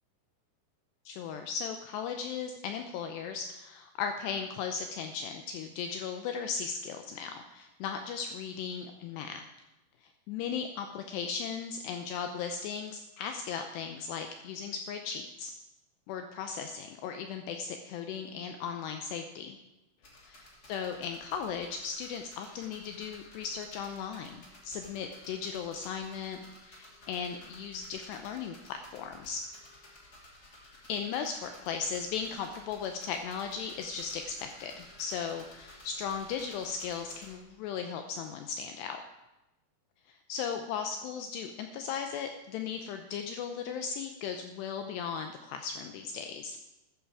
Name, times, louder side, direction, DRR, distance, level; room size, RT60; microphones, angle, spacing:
voice 1, 1.1-9.4 10.0-15.5 16.1-19.6 20.3-20.4 20.7-29.4 30.9-39.0 40.3-46.6, left 6 dB, 85° left, 6 dB, 2.4 m, -37 dB
sound 1, 20.0-37.4, left 2 dB, 25° left, 2.2 m, -54 dB
14.0 x 11.5 x 4.8 m, 0.99 s
omnidirectional pair, 5.8 m